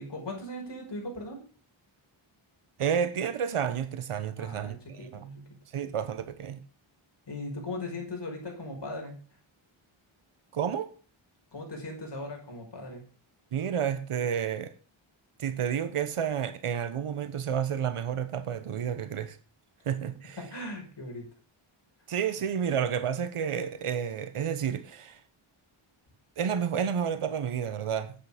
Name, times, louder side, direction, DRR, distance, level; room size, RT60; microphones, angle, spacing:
voice 1, 0.0-1.4 4.4-5.4 7.3-9.2 11.5-13.0 20.4-21.2, left 2 dB, 55° left, 5.7 m, -38 dB
voice 2, 2.8-5.2 5.7-6.6 10.5-10.9 13.5-14.7 15.4-19.4 19.8-20.4 22.1-25.2 26.4-28.1, right 8 dB, 85° right, 1.2 m, -30 dB
10.0 x 8.7 x 5.1 m
wide cardioid pair, 125°, 50 cm